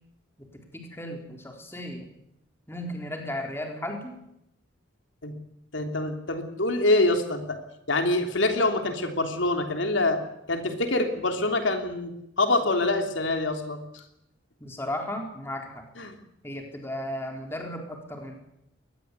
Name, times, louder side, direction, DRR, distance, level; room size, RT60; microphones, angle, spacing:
voice 1, 0.4-2.1 2.7-4.2 14.6-15.8 16.4-18.3, left 1 dB, 10° left, 2 dB, 4.1 m, -35 dB
voice 2, 5.7-7.6 7.9-10.2 10.5-14.0 16.0-16.1, left 2 dB, 70° left, 5 dB, 3.3 m, -25 dB
23.0 x 20.5 x 8.4 m, 0.82 s
head